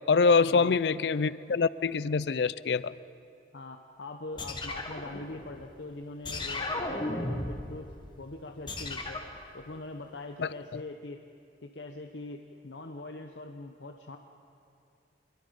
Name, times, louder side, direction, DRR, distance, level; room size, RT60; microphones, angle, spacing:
voice 1, 0.1-2.9 10.4-10.5, left 4 dB, 70° left, 18 dB, 0.5 m, -25 dB
voice 2, 3.5-7.9 8.2-9.2 9.5-11.2 11.6-14.2, left 2 dB, 85° left, 4 dB, 0.9 m, -42 dB
sound 1, 4.4-5.7 6.2-7.8 8.7-9.4, left 2 dB, 25° left, 1.7 m, -35 dB
25.0 x 22.5 x 5.2 m, 2.6 s
head